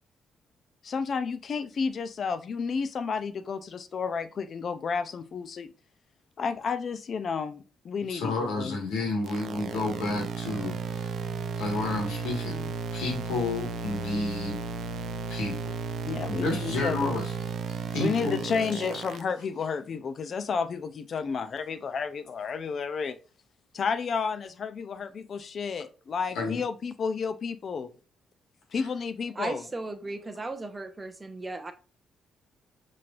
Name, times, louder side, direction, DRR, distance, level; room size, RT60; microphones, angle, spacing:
voice 1, 0.8-5.7 6.4-8.8 16.0-17.2 18.0-23.2 23.7-27.9 28.7-29.6, left 5 dB, 50° left, 0.5 m, -31 dB
voice 2, 8.1-11.1 11.6-14.6 15.3-15.7 16.3-17.3 17.9-18.4 18.7-18.8 26.4-26.6, left 3 dB, 90° left, 1.6 m, -31 dB
sound 1, 9.3-19.2, right 5 dB, 65° right, 0.5 m, -34 dB
voice 3, 29.3-31.7, right 2 dB, 25° right, 0.7 m, -36 dB
5.9 x 3.1 x 2.5 m
cardioid pair, 90°, 0 cm